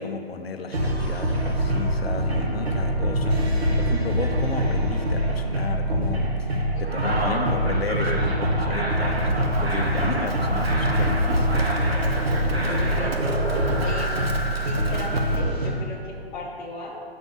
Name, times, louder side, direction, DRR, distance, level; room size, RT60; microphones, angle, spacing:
voice 1, 0.0-11.7, left 4 dB, 75° left, 6 dB, 1.0 m, -33 dB
sound 1, 0.7-15.7, right 1 dB, 90° right, 1.9 m, -24 dB
voice 2, 6.7-7.2 12.7-13.4 13.8-14.3 14.6-17.0, left 2 dB, 10° left, -6 dB, 0.6 m, -37 dB
Livestock farm animals working animals, 8.9-15.4, right 3 dB, 75° right, 1.2 m, -38 dB
7.9 x 7.0 x 6.1 m, 2.4 s
figure-of-eight pair, 135°, 31 cm